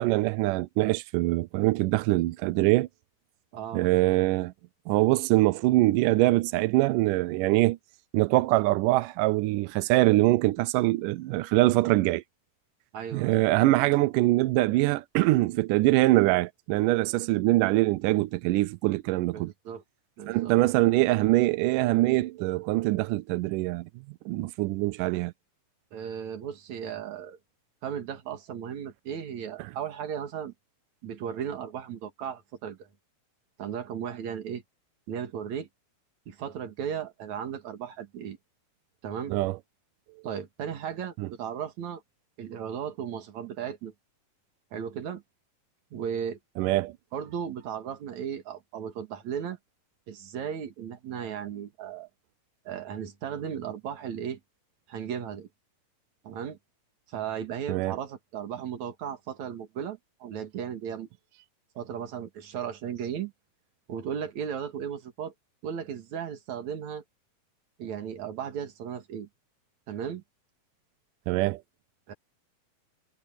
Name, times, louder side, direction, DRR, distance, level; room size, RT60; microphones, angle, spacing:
voice 1, 0.0-2.9 3.7-4.5 4.9-7.8 8.1-12.2 13.1-19.5 20.3-23.9 24.3-25.3 39.3-39.6 41.2-41.3 46.6-46.9 57.7-58.0 71.3-71.6, right 19 dB, 80° right, 1.9 m, -23 dB
voice 2, 3.5-3.9 12.9-13.5 19.3-19.8 20.2-20.6 25.9-27.4 27.8-30.5 31.0-32.9 33.6-34.6 35.1-35.7 36.3-38.4 39.0-39.4 40.2-42.0 42.4-43.9 44.7-45.2 45.9-46.4 47.1-49.6 50.1-52.1 52.6-54.4 54.9-55.5 56.2-56.6 57.1-61.1 61.8-63.3 63.9-65.3 65.6-67.0 67.8-69.3 69.9-70.2 72.1-72.2, right 8 dB, 55° right, 3.0 m, -36 dB
omnidirectional pair, 4.3 m